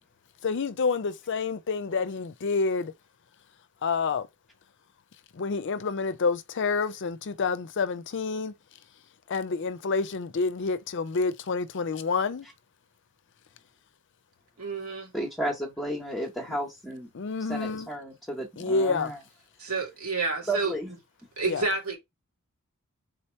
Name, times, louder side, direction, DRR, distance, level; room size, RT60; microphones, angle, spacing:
voice 1, 0.4-2.9 3.8-4.3 5.3-8.5 9.3-12.5 17.1-17.9 18.6-19.1 21.5-21.6, left 4 dB, 55° left, 0.5 m, -28 dB
voice 2, 14.6-15.1 19.6-20.7 21.4-22.0, right 3 dB, 80° right, 2.2 m, -29 dB
voice 3, 15.1-17.1 17.4-19.2 20.5-20.9, right 1 dB, ahead, 0.9 m, -33 dB
3.8 x 2.9 x 4.4 m
head